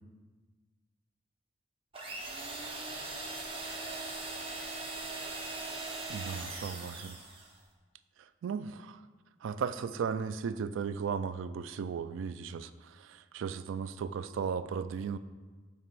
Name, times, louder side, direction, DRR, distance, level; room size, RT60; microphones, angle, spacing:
sound 1, 1.9-7.6, right 2 dB, 30° right, 0.7 m, -40 dB
voice 1, 6.1-7.2 8.4-9.0 9.4-15.2, right 6 dB, 80° right, 13 dB, 0.3 m, -36 dB
7.4 x 2.9 x 6.1 m, 1.4 s
head